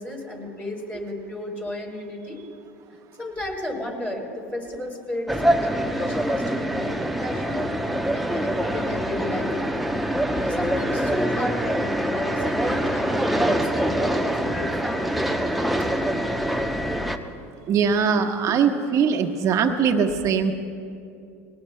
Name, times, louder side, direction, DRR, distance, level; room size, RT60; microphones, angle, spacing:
voice 1, 0.0-2.4 3.2-7.7 8.1-9.8 10.4-15.2, left 1 dB, 20° left, -1 dB, 3.7 m, -33 dB
sound 1, 5.3-17.2, right 1 dB, ahead, 0.8 m, -24 dB
voice 2, 17.7-20.5, right 6 dB, 45° right, 4 dB, 1.3 m, -21 dB
21.0 x 19.0 x 2.2 m, 2.4 s
hypercardioid pair, 95°, 8 cm